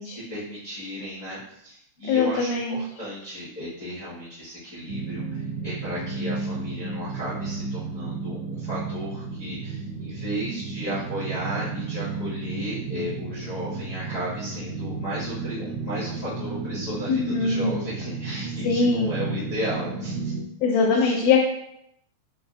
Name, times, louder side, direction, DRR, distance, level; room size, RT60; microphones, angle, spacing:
voice 1, 0.0-20.3 20.9-21.2, equal, 60° left, -12 dB, 0.8 m, -34 dB
voice 2, 2.1-2.8 17.1-17.8 18.6-19.2 20.6-21.4, left 4 dB, 80° left, -2 dB, 1.9 m, -22 dB
sound 1, 4.9-20.4, right 4 dB, 80° right, 1.7 m, -33 dB
5.3 x 2.4 x 2.4 m, 0.75 s
omnidirectional pair, 3.5 m